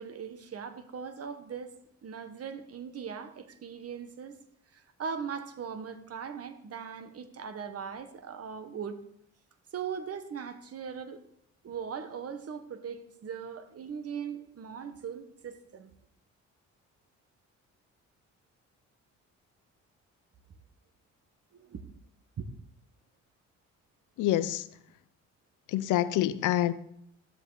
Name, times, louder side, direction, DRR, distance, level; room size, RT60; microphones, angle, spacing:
voice 1, 0.0-1.7 2.0-4.4 4.7-9.0 9.7-11.2 11.6-15.9 21.5-21.8 22.4-22.5, right 7 dB, 50° right, 9 dB, 1.5 m, -39 dB
voice 2, 24.2-24.6 25.7-26.7, left 13 dB, 85° left, 16 dB, 0.7 m, -26 dB
15.5 x 13.0 x 4.2 m, 0.71 s
cardioid pair, 90°, 30 cm